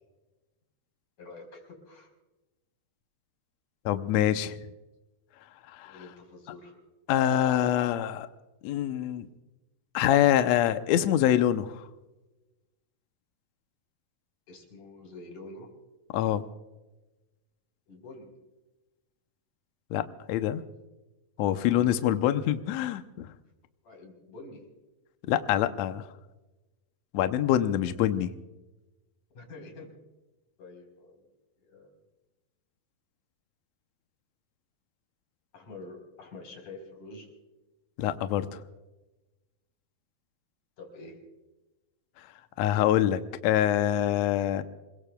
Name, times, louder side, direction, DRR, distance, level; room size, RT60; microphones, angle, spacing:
voice 1, 1.2-2.1 5.8-6.8 14.5-15.7 17.9-18.3 21.5-22.3 23.8-24.7 29.3-29.9 30.6-31.2 31.6-31.9 35.5-37.3 40.8-41.2, left 2 dB, 55° left, 2 dB, 5.6 m, -46 dB
voice 2, 3.8-4.6 5.7-5.9 7.1-8.3 8.6-9.3 9.9-11.8 16.1-16.4 19.9-20.6 21.4-23.3 25.3-26.1 27.1-28.3 38.0-38.6 42.6-44.6, left 11 dB, 85° left, 9 dB, 1.6 m, -25 dB
27.0 x 22.0 x 2.3 m, 1.1 s
omnidirectional pair, 4.1 m